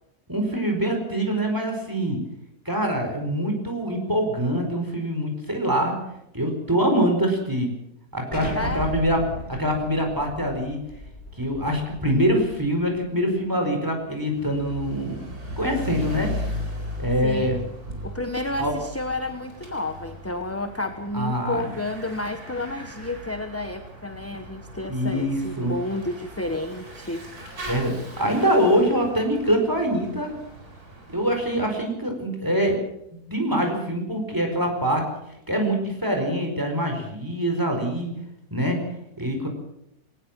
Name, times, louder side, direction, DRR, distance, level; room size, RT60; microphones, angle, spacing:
voice 1, 0.3-2.2 2.6-5.9 6.3-7.7 8.1-9.2 9.5-10.8 11.4-15.2 15.6-16.3 17.0-17.6 18.6-18.7 21.1-21.7 24.9-25.7 27.7-30.3 31.1-32.8 33.3-35.0 35.5-38.1 38.5-38.8 39.2-39.5, equal, 10° right, 3 dB, 4.8 m, -24 dB
Explosion, 8.3-13.0, right 1 dB, 25° left, 7.0 m, -36 dB
voice 2, 8.5-8.9 17.2-17.5 18.0-27.3, left 2 dB, 10° left, 8 dB, 1.0 m, -31 dB
Bicycle / Mechanisms, 14.2-31.8, left 1 dB, 70° right, 4.8 m, -37 dB
19.5 x 19.0 x 7.4 m, 0.83 s
omnidirectional pair, 1.6 m